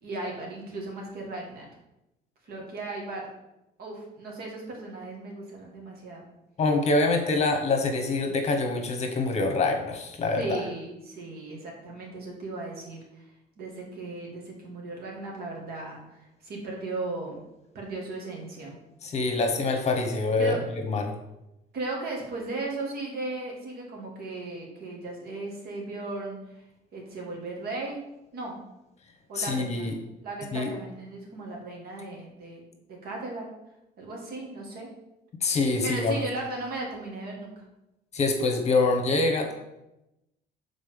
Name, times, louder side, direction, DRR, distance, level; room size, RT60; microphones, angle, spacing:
voice 1, 0.0-1.7 2.5-3.3 3.8-6.3 10.4-13.3 13.6-17.4 17.7-18.8 20.4-20.6 21.7-26.6 26.9-28.0 28.3-28.6 29.3-32.6 32.9-33.5 34.0-34.9 35.8-37.6, right 2 dB, 65° right, -1 dB, 1.9 m, -36 dB
voice 2, 6.6-10.6 19.0-20.6 20.9-21.1 29.3-29.9 30.5-30.7 35.4-36.3 38.1-39.5, left 3 dB, 40° left, 3 dB, 1.1 m, -25 dB
5.4 x 4.0 x 5.2 m, 0.91 s
cardioid pair, 110°, 17 cm